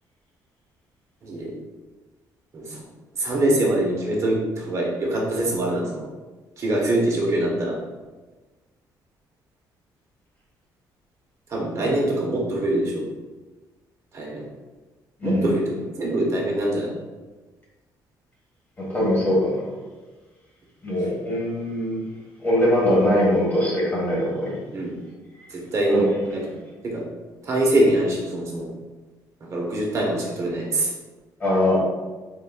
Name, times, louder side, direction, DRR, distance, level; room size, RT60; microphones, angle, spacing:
voice 1, 3.2-6.1 6.6-7.8 11.5-13.0 14.1-14.4 15.2-15.6 16.0-16.9 24.7-24.9 25.5-26.4 26.8-27.0 27.4-28.7 29.5-30.9, right 1 dB, 40° right, -2 dB, 1.1 m, -23 dB
voice 2, 15.2-15.6 18.8-19.6 20.8-22.0 22.4-24.6 25.4-25.5 25.9-26.0 31.4-31.8, left 1 dB, 25° left, -6 dB, 1.4 m, -22 dB
4.0 x 3.9 x 2.3 m, 1.2 s
cardioid pair, 135°, 8 cm